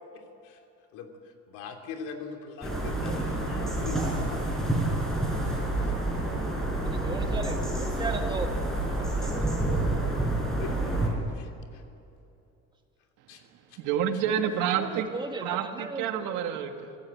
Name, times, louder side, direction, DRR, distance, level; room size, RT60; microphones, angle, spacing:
voice 1, 0.1-0.6 0.9-4.3 5.5-5.9 8.8-9.0 10.6-11.0 11.3-11.8 13.3-13.4 13.7-13.8, left 5 dB, 80° left, 4 dB, 3.0 m, -42 dB
sound 1, 2.6-11.1, right 1 dB, ahead, 5.1 m, -28 dB
voice 2, 6.8-8.5 9.0-9.6 15.1-16.4, right 3 dB, 15° right, 5 dB, 1.5 m, -36 dB
voice 3, 13.8-15.1 15.4-17.0, right 9 dB, 80° right, 6 dB, 2.0 m, -29 dB
24.5 x 16.5 x 8.6 m, 2.7 s
cardioid pair, 165°, 30 cm